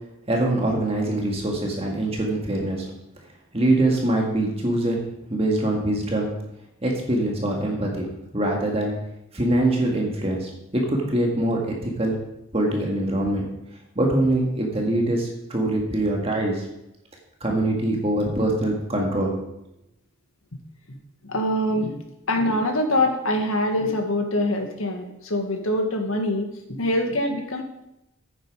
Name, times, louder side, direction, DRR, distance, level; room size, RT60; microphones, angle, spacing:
voice 1, 0.3-2.9 3.5-6.3 6.8-8.1 8.3-8.9 9.3-12.2 12.5-13.5 14.0-16.7 17.4-19.4, right 1 dB, 30° right, 0 dB, 1.8 m, -23 dB
voice 2, 21.2-22.0 22.3-27.6, left 1 dB, 85° left, 3 dB, 1.8 m, -24 dB
9.5 x 8.0 x 5.0 m, 0.87 s
head